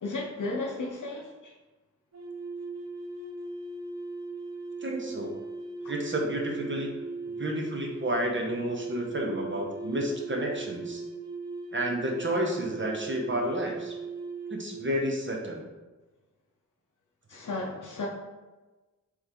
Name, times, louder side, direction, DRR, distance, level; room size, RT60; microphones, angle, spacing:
voice 1, 0.0-1.5 17.3-18.1, left 2 dB, 85° left, -2 dB, 0.6 m, -34 dB
sound 1, 2.1-14.9, right 3 dB, 60° right, 0.5 m, -38 dB
voice 2, 4.8-5.3 5.9-6.9 7.3-11.0 11.7-14.0 14.5-15.6, right 1 dB, 40° right, 1 dB, 0.8 m, -31 dB
3.5 x 3.2 x 3.4 m, 1.2 s
wide cardioid pair, 40°, 30 cm